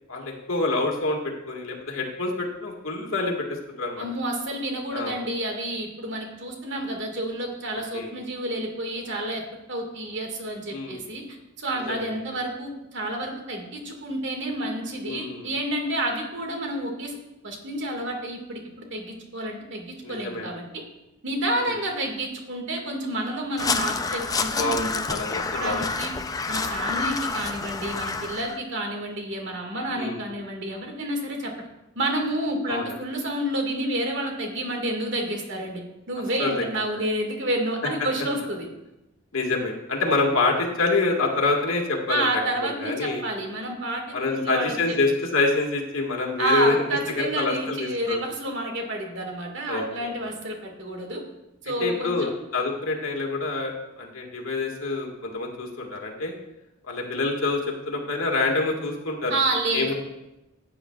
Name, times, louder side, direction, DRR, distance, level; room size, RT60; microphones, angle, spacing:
voice 1, 0.1-4.0 4.9-5.2 7.9-8.1 10.7-11.0 11.9-12.1 15.0-15.5 20.0-20.5 21.6-21.7 24.6-25.8 29.9-30.2 32.7-32.9 36.4-36.6 39.3-43.2 44.1-46.7 47.2-48.2 49.7-50.3 51.8-56.3 56.8-59.4 59.7-59.9, left 3 dB, 85° left, 0 dB, 1.8 m, -26 dB
voice 2, 4.0-9.4 9.7-11.2 11.6-17.2 17.4-20.8 21.2-25.2 25.5-26.1 26.5-31.5 32.0-35.8 36.1-38.7 42.1-44.0 44.3-44.7 46.4-51.2 51.6-52.3 59.3-59.9, right 1 dB, 60° right, 2 dB, 1.9 m, -29 dB
Crow, 23.6-28.6, left 4 dB, 20° left, 0.4 m, -28 dB
14.0 x 8.9 x 2.4 m, 0.94 s
head